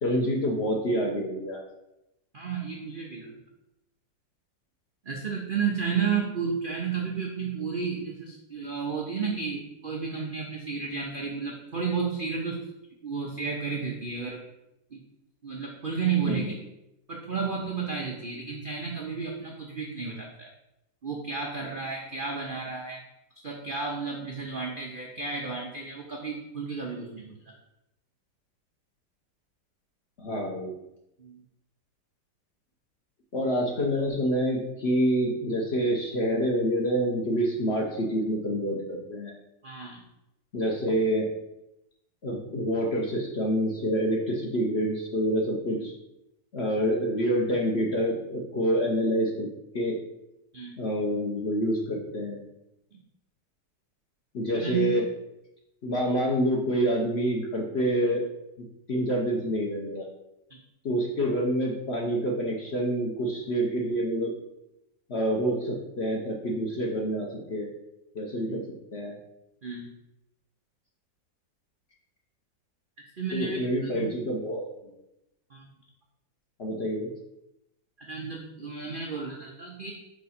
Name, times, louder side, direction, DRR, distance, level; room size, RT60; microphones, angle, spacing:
voice 1, 0.0-1.6 16.2-16.5 30.2-30.7 33.3-39.3 40.5-41.3 42.2-45.9 46.5-49.5 49.7-50.0 50.8-52.4 54.3-55.0 55.8-58.2 58.6-60.1 60.8-64.3 65.1-67.7 68.1-68.6 68.9-69.2 73.3-74.7 76.6-77.1, equal, 50° left, -1 dB, 0.8 m, -27 dB
voice 2, 2.3-3.3 5.0-12.7 13.0-14.4 14.9-15.0 15.4-16.6 17.1-20.5 21.0-23.0 23.4-27.5 31.2-31.4 39.6-40.0 50.5-50.8 54.5-54.9 68.4-68.6 69.6-69.9 73.2-74.1 75.5-75.7 78.0-79.9, right 5 dB, 80° right, -1 dB, 0.4 m, -32 dB
4.7 x 4.7 x 4.2 m, 0.87 s
omnidirectional pair, 2.0 m